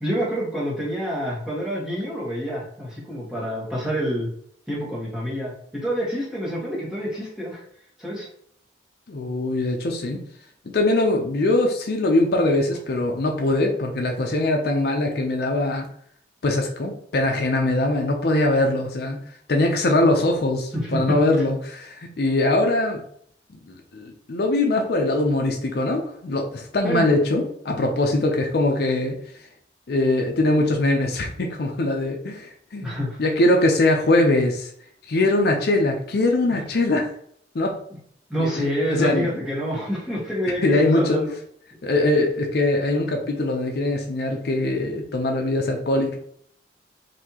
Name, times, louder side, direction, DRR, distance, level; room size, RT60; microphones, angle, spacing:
voice 1, 0.0-4.3 4.7-7.6 8.0-8.3 20.7-21.2 26.8-27.0 32.8-33.2 38.3-41.3, equal, 5° right, -7 dB, 1.4 m, -27 dB
voice 2, 9.1-10.2 10.6-15.9 16.4-19.2 19.5-23.0 23.7-29.2 29.9-32.9 33.2-34.7 35.1-37.1 37.5-37.8 38.4-39.3 40.6-41.3 41.8-46.2, left 2 dB, 55° left, 2 dB, 0.5 m, -22 dB
4.2 x 2.7 x 2.8 m, 0.64 s
head